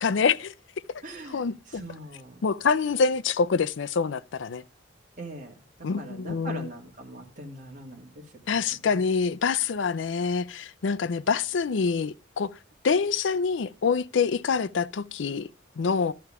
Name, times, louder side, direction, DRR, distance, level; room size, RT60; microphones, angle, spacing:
voice 1, 0.0-0.5 1.3-1.8 2.4-4.6 5.8-6.7 8.5-12.5 12.8-15.5 15.8-16.1, left 5 dB, 85° left, 0.5 m, -26 dB
voice 2, 1.0-1.5 1.7-2.4 5.2-5.5 6.0-8.1 8.5-8.6, right 1 dB, 45° right, 2.1 m, -41 dB
11.5 x 6.8 x 4.8 m
head